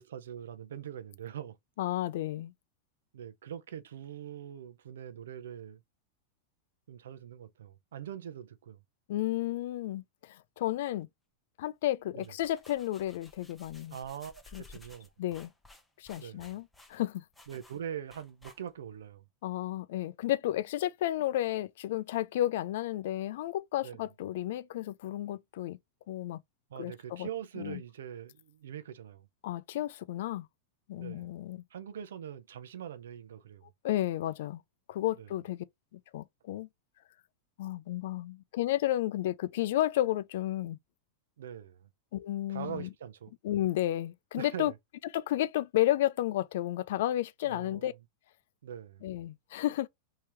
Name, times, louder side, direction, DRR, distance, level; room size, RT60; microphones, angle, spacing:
voice 1, 0.0-1.6 3.1-5.8 6.9-8.8 12.1-12.3 13.9-15.1 16.2-16.5 17.5-19.2 23.8-24.0 26.7-29.3 31.0-31.3 31.7-33.7 35.2-35.3 41.4-41.9 42.5-43.3 44.4-44.8 47.4-47.9 48.6-49.0, right 9 dB, 85° right, 0.5 m, -43 dB
voice 2, 1.8-2.5 9.1-11.1 11.6-14.0 14.5-14.6 15.2-15.5 16.0-17.2 19.4-25.8 26.1-26.4 26.8-27.3 27.6-27.8 29.4-30.5 30.9-31.6 33.8-34.6 34.9-35.6 35.9-36.7 37.6-40.8 42.1-42.9 43.4-44.7 45.1-47.9 49.0-49.9, left 14 dB, 70° left, 0.3 m, -32 dB
sound 1, 12.0-19.0, left 2 dB, 5° left, 0.7 m, -56 dB
3.0 x 2.8 x 3.4 m
supercardioid pair, 130°, 0 cm